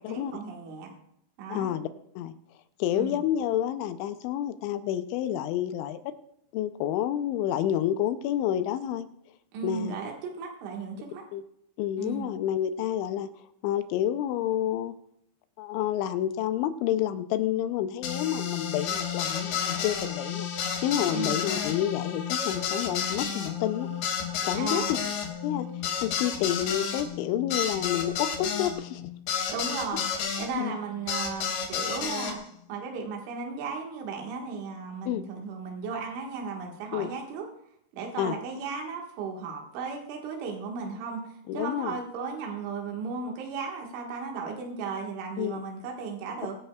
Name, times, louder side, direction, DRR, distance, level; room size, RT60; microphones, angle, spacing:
voice 1, 0.1-0.9 1.4-1.7 2.9-3.2 9.5-11.2 12.0-12.3 21.1-21.4 24.5-24.9 29.5-32.4 32.7-37.5 37.9-46.6, right 5 dB, 80° right, 0 dB, 4.0 m, -35 dB
voice 2, 1.5-1.9 2.2-2.3 2.8-6.1 6.5-9.1 9.6-10.0 11.3-11.4 11.8-13.3 13.6-15.0 15.6-20.5 20.8-23.9 24.4-24.8 25.4-25.7 26.0-29.1 30.5-30.8 35.1-35.2 36.9-37.1 38.2-38.3 41.5-42.0 45.4-45.6, left 11 dB, 85° left, 11 dB, 2.9 m, -29 dB
sound 1, 18.0-30.5 31.1-32.3, left 7 dB, 65° left, 3.2 m, -31 dB
23.5 x 10.0 x 2.3 m, 0.72 s
omnidirectional pair, 5.4 m